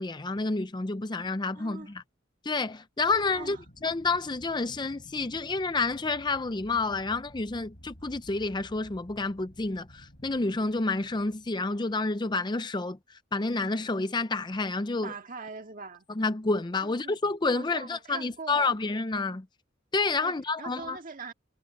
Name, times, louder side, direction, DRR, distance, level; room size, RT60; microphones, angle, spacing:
voice 1, 0.0-2.0 2.4-3.6 3.8-15.1 16.2-19.5 19.9-21.0, left 3 dB, 20° left, 0.5 m, -29 dB
voice 2, 1.6-1.9 3.3-3.6 15.0-16.1 16.8-17.2 17.5-18.7 20.2-21.3, right 4 dB, 45° right, 2.0 m, -42 dB
Aircraft, 3.0-12.4, equal, 50° left, 4.8 m, -53 dB
head